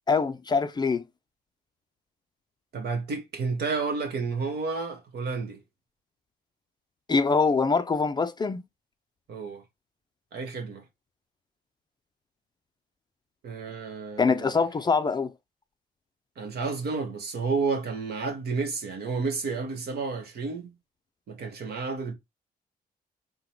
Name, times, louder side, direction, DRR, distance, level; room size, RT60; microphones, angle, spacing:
voice 1, 0.1-1.0 7.1-8.6 14.2-15.3, left 4 dB, 25° left, 0.4 m, -24 dB
voice 2, 2.7-5.6 9.3-9.6 10.3-10.8 13.4-14.5 16.4-20.7 21.3-22.1, right 4 dB, 70° right, 1.4 m, -31 dB
3.8 x 2.2 x 4.4 m
cardioid pair, 95°, 17 cm